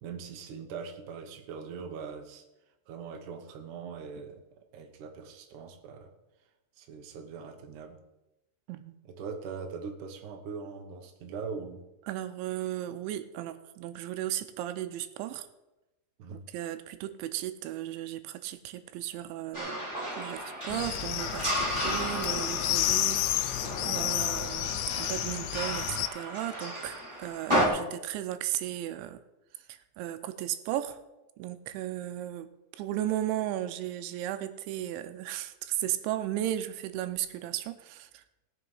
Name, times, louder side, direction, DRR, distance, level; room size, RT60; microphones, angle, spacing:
voice 1, 0.0-2.4 2.9-4.4 4.7-6.1 6.8-8.0 9.0-11.8 16.2-16.4, right 5 dB, 70° right, 4 dB, 2.0 m, -41 dB
voice 2, 12.1-15.5 16.3-19.9 20.2-29.2 29.7-31.0 31.4-32.5 32.8-38.2, right 12 dB, 85° right, 10 dB, 3.0 m, -35 dB
sound 1, 19.5-27.7, equal, 50° right, 0.3 m, -33 dB
sound 2, 20.7-26.1, left 15 dB, 85° left, 2.8 m, -31 dB
18.0 x 6.9 x 5.6 m, 0.98 s
omnidirectional pair, 5.3 m